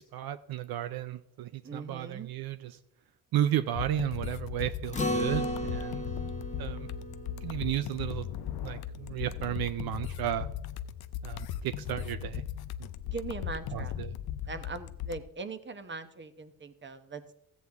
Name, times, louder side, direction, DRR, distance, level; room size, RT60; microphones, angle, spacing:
voice 1, 0.0-2.7 3.3-6.1 6.6-6.9 7.4-8.3 8.6-10.5 11.2-12.4 13.7-14.1, right 11 dB, 75° right, 12 dB, 0.6 m, -33 dB
voice 2, 1.6-2.3 13.1-13.9 14.5-17.3, right 3 dB, 30° right, 11 dB, 1.0 m, -40 dB
sound 1, 3.7-15.2, left 10 dB, 75° left, 0.6 m, -38 dB
Acoustic guitar, 4.9-9.6, equal, 20° left, 1.4 m, -36 dB
14.0 x 8.3 x 3.5 m, 0.78 s
cardioid pair, 75°, 37 cm